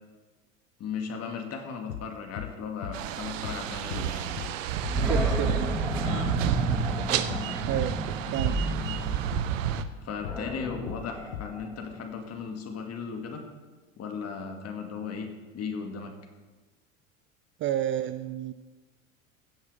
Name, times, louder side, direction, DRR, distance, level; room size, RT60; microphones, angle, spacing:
voice 1, 0.8-4.3 6.0-6.3 10.0-13.4 14.0-15.3 15.5-16.1, left 5 dB, 40° left, 4 dB, 2.3 m, -36 dB
sound 1, 1.9-2.1 2.4-2.6 2.8-3.0 3.4-3.6 3.9-4.1 4.4-4.6 4.8-5.0 5.3-5.5 5.9-6.1 6.4-6.6 6.8-7.0 7.3-7.5 7.8-8.0 8.4-8.6 8.8-9.0 9.3-9.5 9.8-10.0 10.2-10.4 10.9-11.1 11.3-11.5, left 13 dB, 65° left, 0.8 m, -38 dB
sound 2, 2.9-9.8, right 10 dB, 70° right, 0.8 m, -30 dB
Animal, 4.9-12.0, equal, 5° right, 2.1 m, -32 dB
voice 2, 5.1-5.6 7.7-8.0 8.3-8.6 17.6-18.5, right 11 dB, 30° right, 12 dB, 0.5 m, -30 dB
16.5 x 7.2 x 5.0 m, 1.3 s
hypercardioid pair, 80°, 41 cm